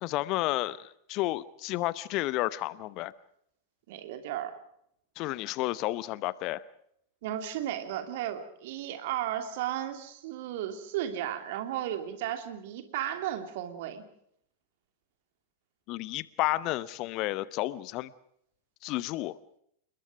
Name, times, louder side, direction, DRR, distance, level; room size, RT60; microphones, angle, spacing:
voice 1, 0.0-3.1 5.2-6.6 15.9-18.1 18.8-19.4, left 17 dB, 40° left, 19 dB, 0.9 m, -31 dB
voice 2, 3.9-4.5 7.2-14.0, right 11 dB, 50° right, 8 dB, 2.9 m, -34 dB
29.0 x 21.5 x 5.0 m, 0.70 s
figure-of-eight pair, 90°, 0 cm